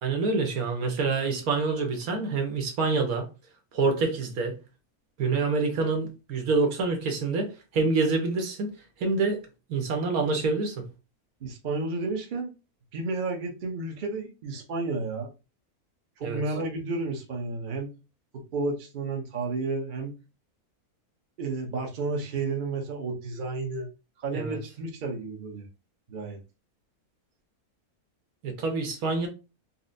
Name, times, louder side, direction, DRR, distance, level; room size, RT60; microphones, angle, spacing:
voice 1, 0.0-3.3 3.7-4.6 5.2-8.7 9.0-9.4 9.7-10.8 16.2-16.4 24.3-24.6 28.4-29.3, right 3 dB, 75° right, 1.3 m, -26 dB
voice 2, 11.4-12.5 12.9-15.3 16.2-17.9 18.3-20.1 21.4-23.9 24.2-25.7 26.1-26.4, right 3 dB, 45° right, 0.7 m, -32 dB
4.1 x 2.0 x 2.5 m
omnidirectional pair, 1.6 m